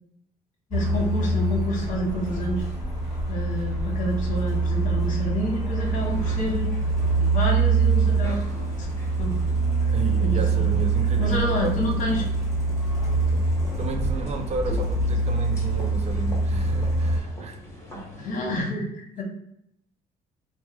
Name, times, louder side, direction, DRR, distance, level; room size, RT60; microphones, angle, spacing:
voice 1, 0.7-2.7 3.3-6.7 7.2-8.4 8.8-8.9 9.2-9.4 9.8-10.7 11.2-12.2 14.7-14.8 18.1-19.2, equal, 50° left, -1 dB, 1.0 m, -29 dB
Truck, 0.7-17.2, right 3 dB, 15° right, 1.4 m, -24 dB
sound 1, 5.7-18.6, left 1 dB, 15° left, 1.2 m, -44 dB
voice 2, 9.9-11.8 13.3-13.5 13.8-17.6 17.9-18.3, right 3 dB, 40° right, 6 dB, 0.4 m, -33 dB
3.1 x 2.1 x 3.1 m, 0.76 s
cardioid pair, 110°, 17 cm